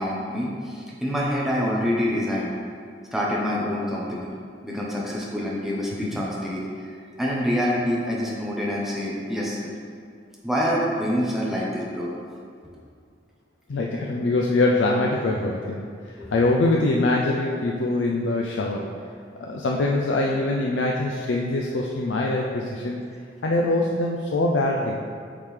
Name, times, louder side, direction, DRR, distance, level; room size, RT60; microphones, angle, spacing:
voice 1, 0.0-2.5 3.1-4.3 4.6-9.7 10.4-12.1, equal, ahead, -6 dB, 0.8 m, -26 dB
voice 2, 13.7-15.9 16.3-18.8 19.4-23.0 23.4-25.0, left 2 dB, 90° left, -1 dB, 0.5 m, -23 dB
8.6 x 3.7 x 3.2 m, 2.3 s
head